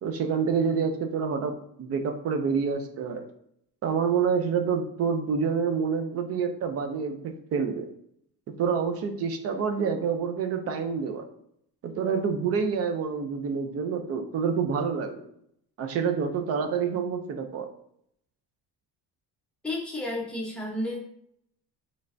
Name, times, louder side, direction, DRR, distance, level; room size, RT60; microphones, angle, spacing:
voice 1, 0.0-3.2 3.8-7.9 8.6-11.2 11.8-15.2 15.8-17.7, right 6 dB, 40° right, 6 dB, 0.4 m, -27 dB
voice 2, 19.6-21.0, left 1 dB, 5° left, -4 dB, 0.8 m, -31 dB
5.3 x 3.2 x 2.5 m, 0.71 s
cardioid pair, 180°, 39 cm